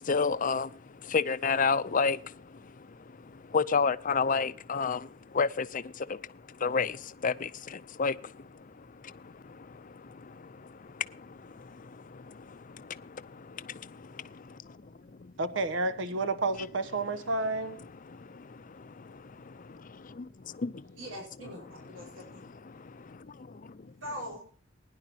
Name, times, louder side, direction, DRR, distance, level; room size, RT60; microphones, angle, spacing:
voice 1, 0.0-15.3 17.0-21.0 21.7-23.9, left 5 dB, 45° left, 0.6 m, -33 dB
voice 2, 15.4-17.8, right 2 dB, 70° right, 0.9 m, -30 dB
voice 3, 20.9-22.4 24.0-24.4, equal, 85° right, 5.2 m, -42 dB
20.5 x 10.5 x 2.9 m
head